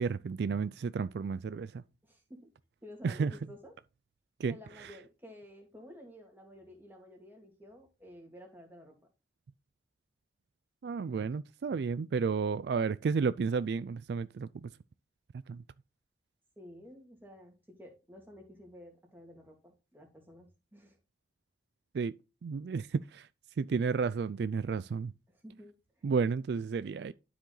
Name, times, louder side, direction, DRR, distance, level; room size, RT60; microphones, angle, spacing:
voice 1, 0.0-1.8 3.0-3.3 4.4-4.6 10.8-14.7 15.5-15.6 21.9-22.1 22.4-23.3 23.6-25.1 26.0-27.1, right 5 dB, 65° right, 0.3 m, -32 dB
voice 2, 2.0-2.5 2.8-3.7 4.5-9.0 16.6-21.0 25.3-26.2, left 1 dB, 10° right, 2.3 m, -52 dB
11.5 x 5.0 x 3.9 m
head